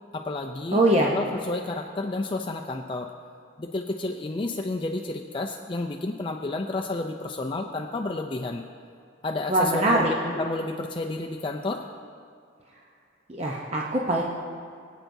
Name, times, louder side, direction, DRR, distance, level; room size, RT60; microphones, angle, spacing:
voice 1, 0.1-3.1 3.6-8.6 9.2-11.8, left 2 dB, 25° left, 2 dB, 0.4 m, -31 dB
voice 2, 0.7-1.1 9.5-10.1 13.3-14.2, right 1 dB, 35° right, -2 dB, 0.8 m, -22 dB
23.0 x 9.0 x 2.7 m, 2.2 s
head